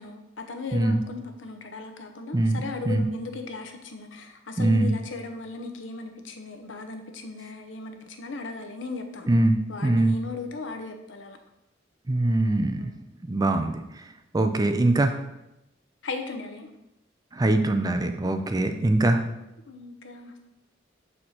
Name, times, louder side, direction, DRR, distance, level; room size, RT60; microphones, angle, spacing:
voice 1, 0.0-9.3 9.7-11.4 12.8-12.9 16.0-16.7 18.2-18.5 19.7-20.4, left 4 dB, 75° left, 6 dB, 0.8 m, -37 dB
voice 2, 0.7-1.0 2.3-3.1 4.6-4.9 9.3-9.6 9.8-10.2 12.1-12.9 13.2-14.0 14.3-15.1 17.3-19.2, right 2 dB, 20° right, 7 dB, 0.4 m, -22 dB
6.5 x 4.3 x 4.2 m, 0.89 s
head